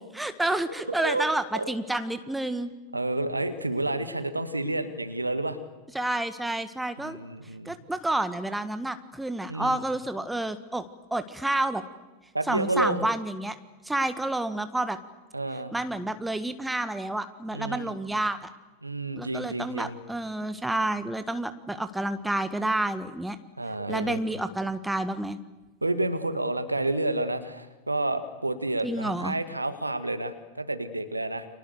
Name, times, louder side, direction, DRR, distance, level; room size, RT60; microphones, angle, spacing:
voice 1, 0.2-2.7 5.9-7.2 7.6-11.8 12.5-13.6 13.8-15.0 15.7-18.5 19.1-23.4 23.9-25.4 28.8-29.4, right 1 dB, 5° right, 10 dB, 1.6 m, -29 dB
voice 2, 2.9-5.6 7.0-7.7 9.5-9.8 12.3-13.1 15.3-15.7 17.5-18.0 18.8-20.0 23.6-24.2 25.8-31.5, right 2 dB, 85° right, 10 dB, 2.0 m, -30 dB
30.0 x 25.5 x 6.8 m, 1.2 s
figure-of-eight pair, 90°, 0 cm